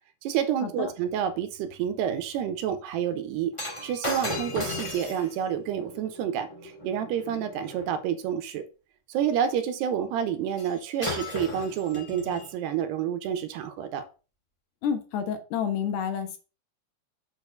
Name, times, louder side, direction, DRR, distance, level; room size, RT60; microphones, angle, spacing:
voice 1, 0.2-3.5 3.8-8.7 9.1-14.1, right 9 dB, 85° right, 8 dB, 3.1 m, -29 dB
Shatter, 3.5-7.9 10.6-10.7 11.0-12.5 13.2-13.4, left 1 dB, 15° left, 1.1 m, -36 dB
voice 2, 14.8-16.4, left 7 dB, 80° left, 6 dB, 3.3 m, -29 dB
7.9 x 4.4 x 6.9 m, 0.34 s
omnidirectional pair, 4.7 m